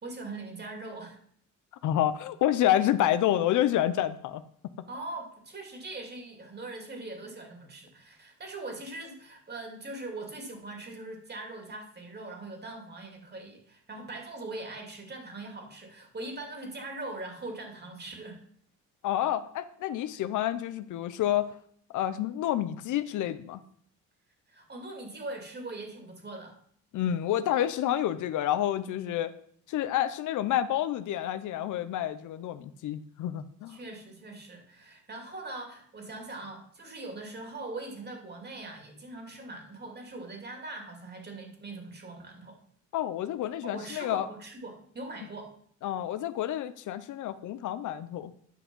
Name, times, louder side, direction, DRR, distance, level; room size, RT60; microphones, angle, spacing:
voice 1, 0.0-1.2 4.9-18.4 20.1-20.2 24.5-26.6 33.7-42.6 43.6-45.5, right 2 dB, 35° right, 2 dB, 2.7 m, -41 dB
voice 2, 1.8-4.4 19.0-21.6 21.9-23.6 26.9-29.3 29.7-33.8 42.9-44.3 45.8-48.3, left 12 dB, 80° left, 13 dB, 0.7 m, -29 dB
10.0 x 6.0 x 5.4 m, 0.62 s
cardioid pair, 90°, 30 cm